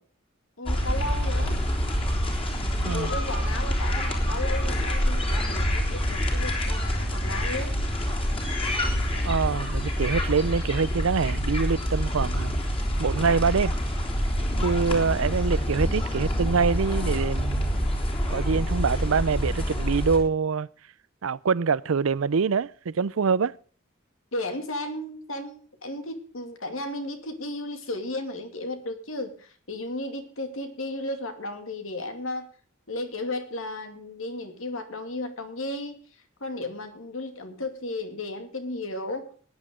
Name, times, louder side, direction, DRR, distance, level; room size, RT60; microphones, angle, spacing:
voice 1, 0.6-1.6 2.9-7.7 14.4-14.7 24.3-32.5 32.9-39.3, left 2 dB, 85° left, 2.4 m, -34 dB
sound 1, 0.7-20.2, equal, 25° left, 3.5 m, -26 dB
voice 2, 9.2-12.6 13.0-13.7 14.6-17.7 18.3-20.7 21.2-23.5, right 5 dB, 90° right, 0.5 m, -25 dB
19.5 x 9.9 x 3.7 m
head